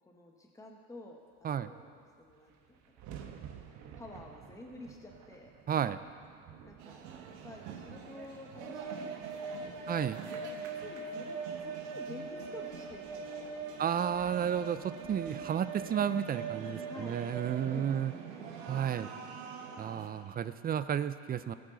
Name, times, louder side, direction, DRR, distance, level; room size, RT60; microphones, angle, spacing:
voice 1, 0.0-1.2 1.6-3.1 3.7-5.5 6.6-7.1 7.4-9.9 10.5-13.9 16.9-17.2 17.7-18.6, left 2 dB, 10° left, 1 dB, 1.4 m, -50 dB
sound 1, 1.8-1.9 2.1-16.5, right 8 dB, 60° right, 1.2 m, -54 dB
voice 2, 5.7-6.0 9.9-10.2 13.8-18.1 18.7-19.1 19.8-21.5, right 9 dB, 30° right, 13 dB, 0.5 m, -32 dB
sound 2, 6.8-20.1, right 5 dB, 90° right, 1.4 m, -42 dB
18.0 x 8.5 x 3.9 m, 2.1 s
supercardioid pair, 100°, 32 cm